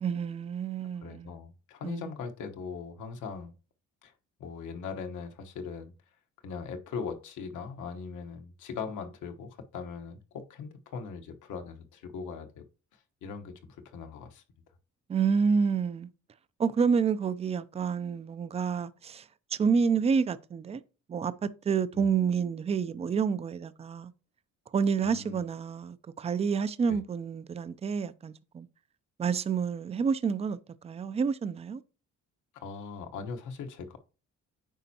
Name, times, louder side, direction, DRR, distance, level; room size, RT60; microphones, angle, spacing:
voice 1, 0.0-1.4 1.8-2.1 15.1-16.1 16.6-19.2 19.5-20.8 21.1-24.1 24.7-28.7 29.2-30.6 30.8-31.8, right 6 dB, 20° right, 0.4 m, -29 dB
voice 2, 1.0-3.5 4.0-4.1 4.4-5.9 6.4-12.6 12.9-14.4 21.9-22.1 25.0-25.4 26.9-27.0 32.5-34.0, left 5 dB, 80° left, 1.2 m, -40 dB
9.1 x 5.3 x 2.8 m
cardioid pair, 150°, 30 cm